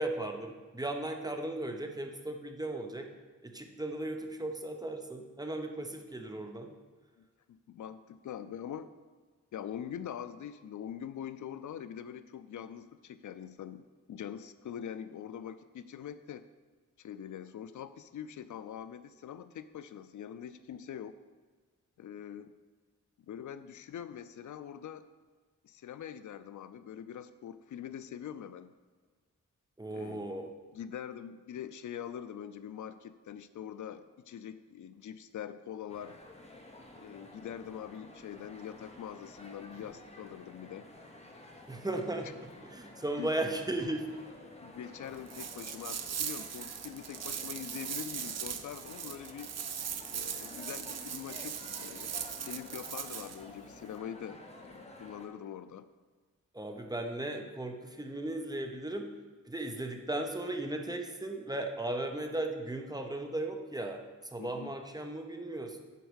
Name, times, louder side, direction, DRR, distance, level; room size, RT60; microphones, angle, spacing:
voice 1, 0.0-3.1 3.4-6.7 29.8-30.5 41.7-42.3 42.7-44.1 56.5-59.1 59.5-64.0 64.3-65.8, right 1 dB, 15° right, 4 dB, 0.8 m, -36 dB
voice 2, 7.2-8.9 9.5-16.5 17.0-21.2 22.0-22.5 23.3-25.0 25.6-28.7 29.9-30.2 30.7-36.2 37.0-40.9 43.2-43.3 44.6-49.5 50.1-52.1 52.4-55.9 64.4-64.7, left 9 dB, 75° left, 13 dB, 0.4 m, -44 dB
sound 1, 35.9-55.3, left 1 dB, 20° left, 1.1 m, -51 dB
sound 2, 45.3-53.4, right 8 dB, 55° right, 0.6 m, -39 dB
8.3 x 4.5 x 6.3 m, 1.5 s
wide cardioid pair, 110°, 30 cm